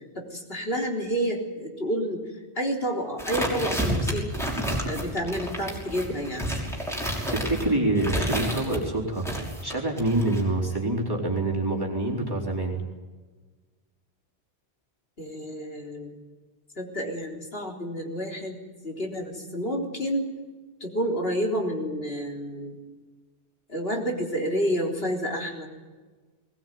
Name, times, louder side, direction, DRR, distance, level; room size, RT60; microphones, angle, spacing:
voice 1, 0.2-2.2 2.6-4.4 4.8-6.5 15.2-16.1 16.8-20.3 20.8-22.8 23.7-25.7, equal, 60° left, 0 dB, 4.1 m, -29 dB
sound 1, 3.2-8.8 9.2-10.4, equal, ahead, 5.9 m, -30 dB
voice 2, 7.3-12.8, right 2 dB, 20° right, -2 dB, 4.4 m, -26 dB
21.0 x 20.5 x 9.5 m, 1.3 s
omnidirectional pair, 1.1 m